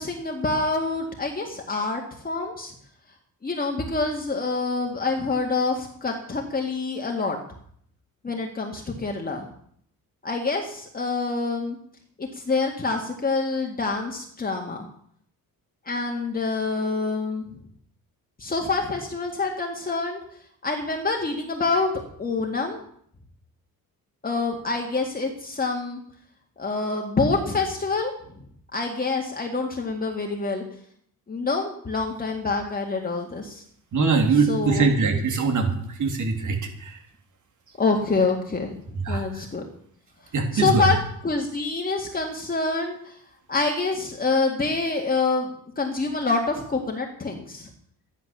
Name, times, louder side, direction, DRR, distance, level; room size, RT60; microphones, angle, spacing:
voice 1, 0.0-2.7 3.4-7.4 8.2-9.4 10.2-11.8 12.2-14.9 15.9-17.5 18.4-20.2 20.6-21.9 22.2-22.8 24.2-26.0 26.6-28.4 28.7-30.6 31.3-33.6 34.5-34.9 37.8-38.8 39.1-39.6 40.5-41.0 41.2-43.2 43.5-47.7, left 3 dB, 25° left, 1 dB, 2.0 m, -26 dB
voice 2, 33.9-37.0 39.0-39.2 40.3-40.8, right 4 dB, 55° right, 5 dB, 3.2 m, -22 dB
13.5 x 11.0 x 6.8 m, 0.64 s
cardioid pair, 135°, 36 cm